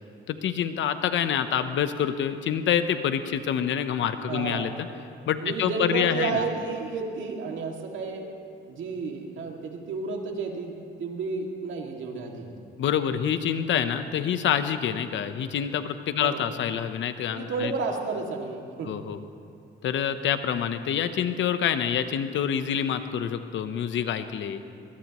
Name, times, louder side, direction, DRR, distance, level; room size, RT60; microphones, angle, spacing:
voice 1, 0.3-4.9 5.3-6.4 12.8-17.7 18.8-19.2 19.8-24.6, left 9 dB, 70° left, 10 dB, 1.0 m, -27 dB
voice 2, 4.3-4.7 5.4-8.3 8.7-12.5 16.2-16.5 17.3-19.0, right 4 dB, 75° right, 1 dB, 2.4 m, -32 dB
22.5 x 20.0 x 3.1 m, 2.5 s
cardioid pair, 90°, 20 cm